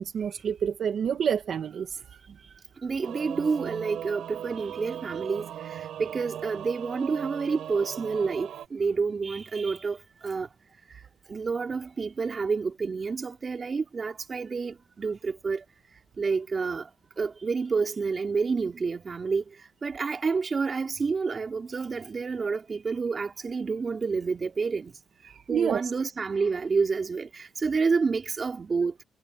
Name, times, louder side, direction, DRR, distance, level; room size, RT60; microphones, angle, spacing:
voice 1, 0.0-2.2 25.2-25.9, right 8 dB, 60° right, 1.4 m, -29 dB
voice 2, 2.8-10.0 10.2-10.5 11.3-15.6 16.2-16.9 17.2-19.4 19.8-24.9 25.5-28.9, right 4 dB, 35° right, 3.4 m, -29 dB
Singing / Musical instrument, 3.0-8.7, right 10 dB, 75° right, 3.6 m, -38 dB
cardioid pair, 90°, 0 cm